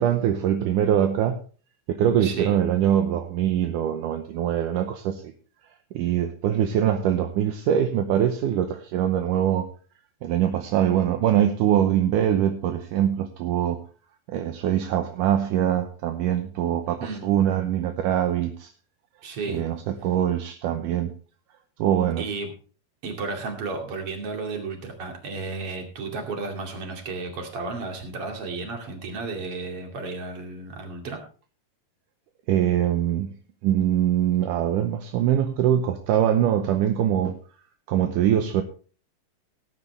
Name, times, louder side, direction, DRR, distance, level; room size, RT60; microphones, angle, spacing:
voice 1, 0.0-1.4 1.9-5.3 5.9-9.7 10.2-13.8 14.3-18.7 19.5-21.1 21.8-22.2 32.5-33.3 33.6-37.4 37.9-38.6, right 10 dB, 75° right, 7 dB, 2.2 m, -23 dB
voice 2, 2.2-2.6 17.0-17.2 19.2-19.6 22.2-22.5 23.0-31.2, right 3 dB, 45° right, 3 dB, 3.2 m, -33 dB
17.5 x 9.8 x 3.3 m, 0.38 s
omnidirectional pair, 4.1 m